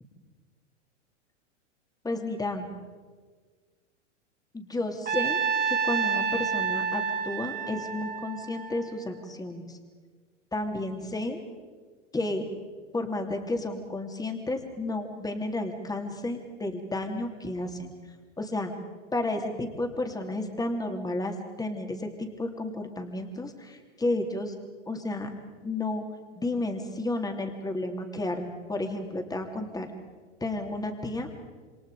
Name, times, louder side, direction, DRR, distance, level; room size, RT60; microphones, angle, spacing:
voice 1, 2.0-2.7 4.5-9.8 10.5-11.4 12.1-12.4 12.9-17.9 18.4-18.7 19.1-24.5 24.9-25.3 25.6-26.0 26.4-29.9 30.4-31.3, left 2 dB, 10° left, 4 dB, 3.1 m, -32 dB
Trumpet, 5.1-9.3, right 6 dB, 25° right, 3.5 m, -29 dB
28.0 x 26.5 x 5.1 m, 1.5 s
hypercardioid pair, 100°, 37 cm